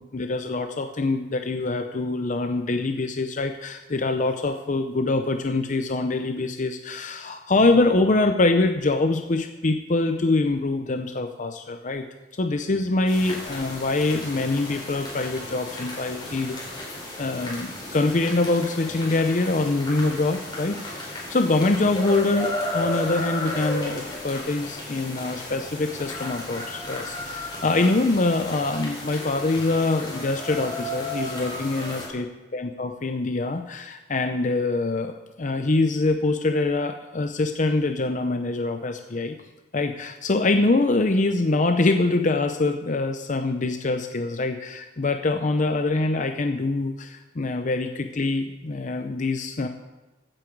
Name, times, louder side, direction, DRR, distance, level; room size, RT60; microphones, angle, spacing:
voice 1, 0.0-12.0 12.4-16.9 17.2-32.3 32.5-39.4 39.7-49.7, left 2 dB, 45° left, 7 dB, 0.7 m, -24 dB
sound 1, 13.1-32.1, left 1 dB, 25° left, 4.2 m, -34 dB
15.5 x 9.0 x 4.7 m, 1.1 s
head